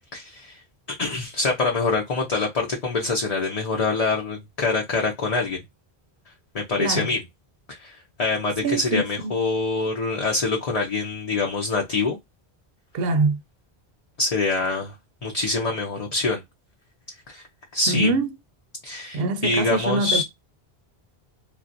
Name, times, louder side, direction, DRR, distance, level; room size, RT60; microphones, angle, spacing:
voice 1, 0.1-0.6 1.0-5.6 6.5-7.2 7.7-12.2 14.2-14.9 15.2-16.4 17.3-17.4 17.7-18.1 18.8-20.2, left 3 dB, 45° left, 0.7 m, -25 dB
voice 2, 6.8-7.1 8.6-9.3 12.9-13.4 17.9-18.3 19.1-20.2, right 3 dB, 75° right, 0.8 m, -24 dB
3.2 x 2.4 x 2.6 m
omnidirectional pair, 1.0 m